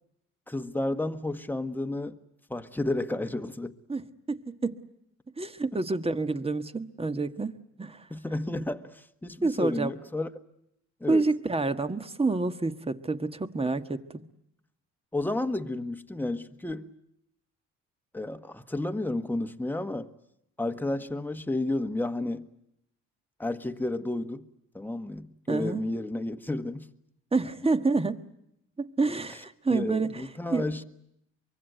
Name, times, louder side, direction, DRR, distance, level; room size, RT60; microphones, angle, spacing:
voice 1, 0.5-2.2 2.5-3.7 8.1-10.3 11.0-11.3 15.1-16.9 18.1-20.1 20.6-22.5 23.4-24.5 24.7-26.9 29.7-30.8, left 2 dB, 5° left, 1.4 m, -31 dB
voice 2, 3.9-4.8 5.4-7.5 7.8-8.1 9.4-9.9 11.1-14.2 25.5-25.8 27.3-28.2 28.8-30.8, right 3 dB, 20° right, 1.5 m, -28 dB
24.0 x 23.5 x 9.2 m
cardioid pair, 90°, 30 cm